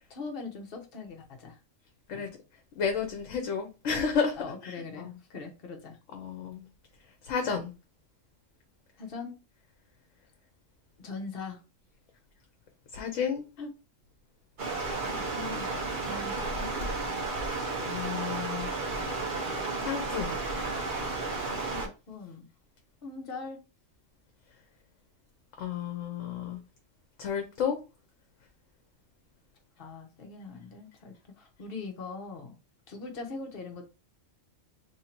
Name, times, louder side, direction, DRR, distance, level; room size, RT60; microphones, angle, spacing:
voice 1, 0.1-1.6 2.1-2.3 4.4-6.0 9.0-9.4 11.0-11.6 13.6-13.7 15.1-15.7 16.0-16.7 21.7-22.5 23.0-23.6 29.8-32.5 32.9-33.8, left 4 dB, 50° left, 1.0 m, -41 dB
voice 2, 2.8-4.4 4.6-5.1 6.1-6.6 7.2-7.7 12.9-13.4 17.8-18.7 19.8-20.4 25.6-26.6 27.2-27.8, left 6 dB, 75° left, 1.1 m, -31 dB
Stream, 14.6-21.9, right 3 dB, 45° right, 1.0 m, -32 dB
3.2 x 2.7 x 4.3 m
omnidirectional pair, 1.3 m